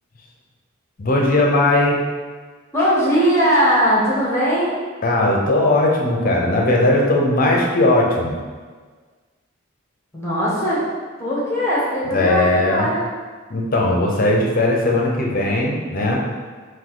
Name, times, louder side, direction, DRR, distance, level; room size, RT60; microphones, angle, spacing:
voice 1, 1.0-2.0 5.0-8.4 12.0-12.9 13.5-16.2, left 2 dB, 45° left, -2 dB, 0.6 m, -18 dB
voice 2, 2.7-4.7 10.1-10.8 11.2-13.0, equal, 15° left, -7 dB, 1.1 m, -19 dB
3.9 x 2.6 x 3.8 m, 1.5 s
head